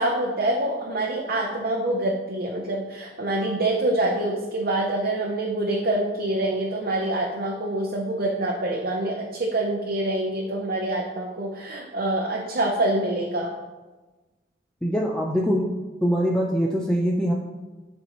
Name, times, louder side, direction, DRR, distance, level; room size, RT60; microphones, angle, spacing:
voice 1, 0.0-13.5, right 1 dB, 55° right, -1 dB, 0.8 m, -26 dB
voice 2, 14.8-15.7 16.0-17.3, equal, 5° left, -2 dB, 0.5 m, -23 dB
11.0 x 4.3 x 3.1 m, 1.2 s
head